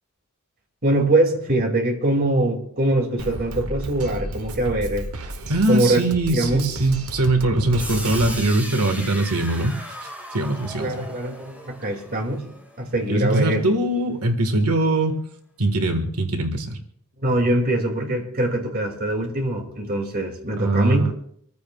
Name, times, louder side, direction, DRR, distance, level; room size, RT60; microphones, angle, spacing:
voice 1, 0.8-5.1 5.7-6.0 6.3-6.6 8.0-8.1 10.8-12.5 12.8-13.6 17.2-21.0, right 1 dB, 45° right, 2 dB, 2.5 m, -23 dB
Drum kit, 3.2-8.4, right 2 dB, 70° right, 1.0 m, -33 dB
voice 2, 5.5-9.7 10.0-11.1 13.1-15.2 15.6-16.8 20.6-21.1, right 2 dB, 90° right, 5 dB, 1.6 m, -22 dB
sound 1, 7.8-13.7, equal, 5° right, 2.0 m, -37 dB
26.5 x 14.5 x 2.4 m, 0.67 s
head